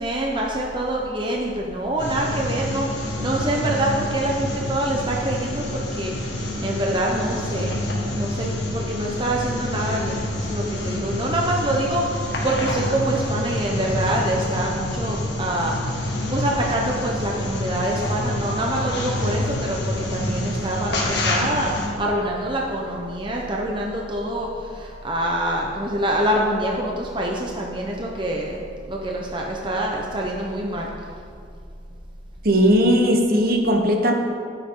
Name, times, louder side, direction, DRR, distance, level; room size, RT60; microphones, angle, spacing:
voice 1, 0.0-7.7 8.1-28.6 28.9-30.9, right 1 dB, 25° right, -1 dB, 1.0 m, -25 dB
sound 1, 2.0-21.9, left 1 dB, 65° left, 2.0 m, -27 dB
voice 2, 32.4-34.1, equal, 50° right, 2 dB, 1.2 m, -18 dB
14.0 x 9.3 x 3.9 m, 2.3 s
head